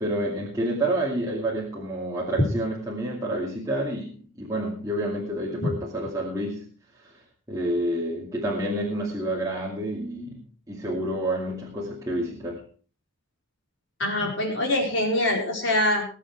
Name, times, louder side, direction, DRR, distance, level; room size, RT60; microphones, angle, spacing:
voice 1, 0.0-6.7 7.0-7.2 7.5-12.6, right 1 dB, 15° right, -3 dB, 2.3 m, -29 dB
voice 2, 14.0-16.0, left 1 dB, 60° left, 0 dB, 4.8 m, -24 dB
20.5 x 8.3 x 4.7 m, 0.41 s
head